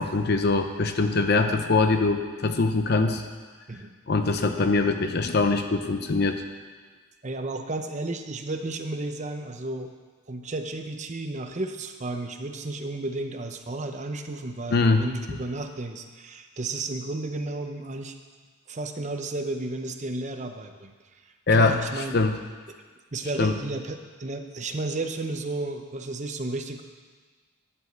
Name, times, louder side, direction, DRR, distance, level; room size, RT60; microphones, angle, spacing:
voice 1, 0.0-3.2 4.1-6.4 14.7-15.0 21.5-21.8 22.1-22.4 23.4-23.6, left 3 dB, 50° left, 7 dB, 0.6 m, -22 dB
voice 2, 7.2-9.9 10.3-18.2 18.7-22.2 23.1-26.8, right 2 dB, 35° right, 6 dB, 0.6 m, -33 dB
11.0 x 5.1 x 7.9 m, 1.5 s
head